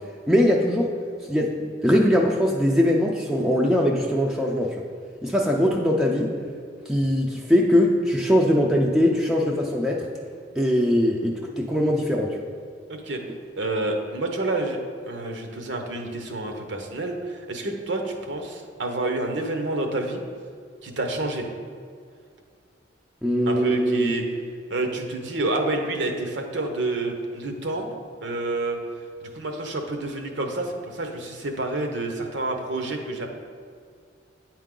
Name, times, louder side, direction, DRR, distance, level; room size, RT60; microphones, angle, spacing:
voice 1, 0.3-0.9 1.3-1.5 1.8-4.7 5.2-6.3 6.9-10.1 10.6-12.4 23.2-24.1, equal, ahead, -2 dB, 0.4 m, -21 dB
voice 2, 12.9-13.2 13.6-14.8 15.1-20.2 20.8-21.5 23.5-24.2 24.7-27.9 28.2-28.8 29.2-33.3, right 2 dB, 75° right, 4 dB, 0.9 m, -28 dB
9.0 x 4.6 x 3.8 m, 2.2 s
head